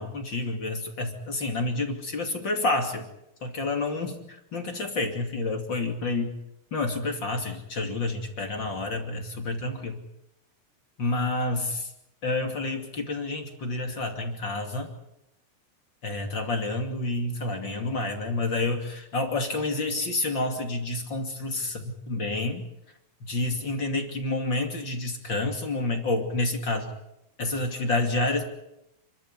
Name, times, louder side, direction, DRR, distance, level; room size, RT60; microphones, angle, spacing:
voice 1, 0.0-3.1 3.4-6.3 6.7-10.0 11.0-11.9 12.2-14.9 16.0-22.7 23.3-26.9 27.4-28.4, left 2 dB, 35° left, 4 dB, 2.8 m, -29 dB
29.5 x 13.5 x 9.7 m, 0.86 s
omnidirectional pair, 4.2 m